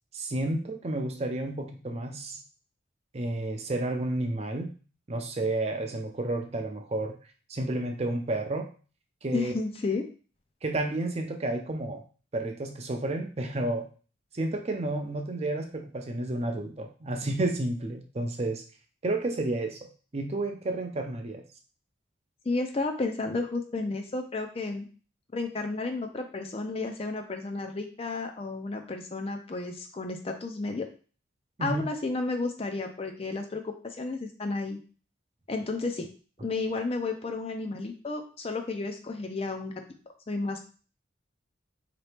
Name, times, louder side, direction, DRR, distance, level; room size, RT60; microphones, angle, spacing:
voice 1, 0.1-2.4 3.1-4.7 5.1-7.2 7.5-8.7 9.2-9.5 10.6-12.0 12.3-13.9 14.3-18.6 19.0-21.4 31.6-31.8, right 2 dB, 30° right, 4 dB, 0.5 m, -31 dB
voice 2, 9.3-10.1 22.5-24.9 25.3-30.9 31.6-34.8 35.5-36.1 36.4-39.8 40.3-40.6, left 3 dB, 30° left, 5 dB, 0.4 m, -32 dB
3.9 x 2.9 x 3.3 m, 0.37 s
head